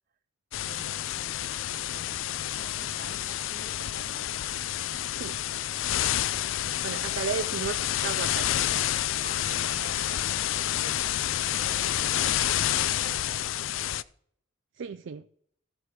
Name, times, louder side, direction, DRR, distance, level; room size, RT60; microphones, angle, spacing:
sound 1, 0.5-14.0, left 12 dB, 70° left, 0.4 m, -29 dB
voice 1, 0.6-4.3 6.6-7.5 9.2-11.2 11.5-14.0, right 3 dB, 45° right, 0.9 m, -50 dB
sound 2, 1.9-9.8, right 1 dB, 10° right, 1.1 m, -58 dB
voice 2, 6.8-8.5 14.8-15.2, right 6 dB, 60° right, 0.4 m, -34 dB
15.5 x 6.2 x 4.6 m
head